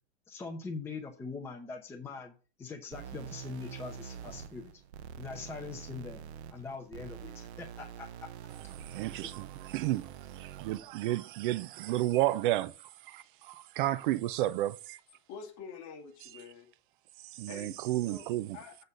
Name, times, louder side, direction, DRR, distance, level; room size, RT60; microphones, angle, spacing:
voice 1, 0.3-2.3 2.6-4.7 5.2-6.2 6.5-8.1 9.2-9.3, left 4 dB, 5° left, 0.9 m, -42 dB
sound 1, 2.9-10.9, right 8 dB, 80° right, 0.8 m, -46 dB
voice 2, 8.8-12.7 13.0-15.0 16.2-16.4 17.2-18.6, right 15 dB, 50° right, 0.5 m, -32 dB
voice 3, 15.3-16.7 17.5-18.2 18.5-18.8, left 6 dB, 40° left, 2.1 m, -47 dB
7.9 x 4.1 x 6.5 m
supercardioid pair, 155°, 32 cm